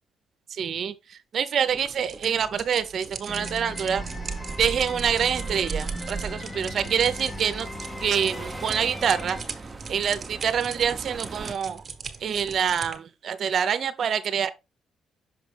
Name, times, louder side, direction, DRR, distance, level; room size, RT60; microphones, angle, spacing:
voice 1, 0.5-4.0 4.6-7.7 8.0-9.4 9.9-11.8 12.2-14.5, right 8 dB, 60° right, 0.7 m, -26 dB
sound 1, 1.7-13.0, right 5 dB, 40° right, 1.2 m, -41 dB
sound 2, 3.3-9.4, left 1 dB, 20° left, 0.9 m, -38 dB
sound 3, 3.9-11.5, right 4 dB, 20° right, 0.9 m, -37 dB
6.2 x 4.9 x 3.3 m
cardioid pair, 90°, 0 cm